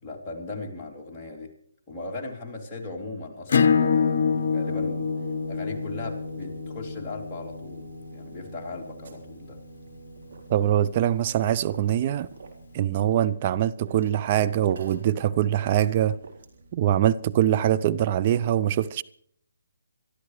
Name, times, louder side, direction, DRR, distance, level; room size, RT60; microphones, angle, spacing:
voice 1, 0.0-1.5 1.9-5.1 5.5-9.6, left 3 dB, 15° left, 3.1 m, -38 dB
Acoustic guitar / Strum, 3.5-8.8, left 6 dB, 55° left, 0.9 m, -26 dB
sound 1, 4.5-17.6, right 5 dB, 75° right, 2.6 m, -47 dB
sound 2, 9.0-16.7, right 3 dB, 55° right, 3.5 m, -49 dB
voice 2, 10.5-12.3 12.7-16.2 16.7-19.0, right 11 dB, 35° right, 0.5 m, -23 dB
24.0 x 13.0 x 3.3 m
figure-of-eight pair, 150°, 0 cm